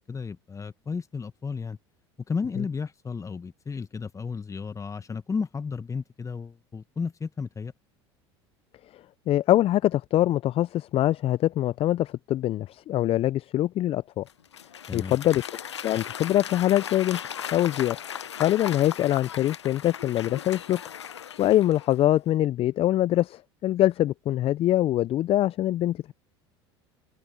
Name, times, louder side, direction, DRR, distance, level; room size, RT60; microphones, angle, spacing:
voice 1, 0.1-1.8 2.3-7.7 14.9-15.2, left 5 dB, 20° left, 1.9 m, -33 dB
voice 2, 9.3-14.2 14.9-15.4 15.8-17.2 17.5-18.0 18.4-20.8 21.4-26.1, left 13 dB, 40° left, 0.6 m, -23 dB
Applause / Crowd, 14.3-22.1, left 8 dB, 90° left, 0.8 m, -37 dB
open air
hypercardioid pair, 75°, 14 cm